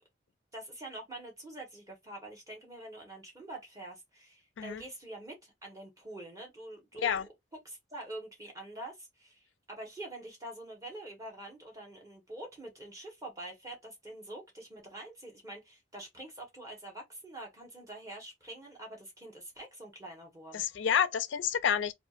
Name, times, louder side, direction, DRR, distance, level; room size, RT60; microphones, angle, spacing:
voice 1, 0.5-7.3 7.6-20.7, right 1 dB, 20° right, 1.2 m, -46 dB
voice 2, 20.5-21.9, left 8 dB, 75° left, 0.4 m, -29 dB
3.5 x 2.4 x 2.4 m
head